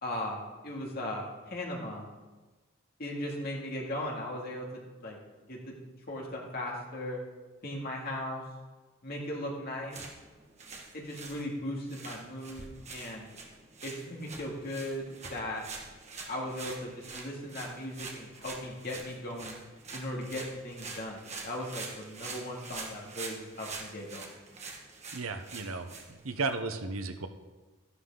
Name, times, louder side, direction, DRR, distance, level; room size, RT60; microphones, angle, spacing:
voice 1, 0.0-2.1 3.0-5.2 5.5-7.2 7.6-8.4 9.0-10.0 10.9-12.6 12.9-13.3 13.8-15.7 16.3-19.6 19.9-24.3, left 1 dB, 45° left, -2 dB, 2.4 m, -38 dB
sound 1, 9.8-26.6, right 4 dB, 30° right, 1.5 m, -45 dB
voice 2, 25.1-27.3, right 3 dB, 80° right, 8 dB, 0.9 m, -34 dB
13.0 x 11.5 x 3.9 m, 1.2 s
head